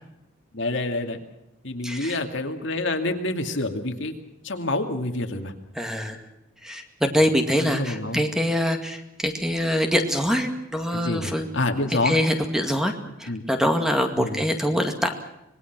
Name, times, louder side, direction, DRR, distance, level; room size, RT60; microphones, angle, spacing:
voice 1, 0.5-1.2 1.6-4.1 4.4-5.5 7.1-7.2 7.6-8.2 10.9-12.2 13.3-13.4 14.2-14.4, left 2 dB, 60° left, 5 dB, 2.4 m, -27 dB
voice 2, 1.8-2.2 5.8-6.2 6.6-11.5 12.0-12.9 13.2-15.1, equal, 5° right, 5 dB, 2.1 m, -24 dB
26.0 x 21.0 x 6.1 m, 0.87 s
head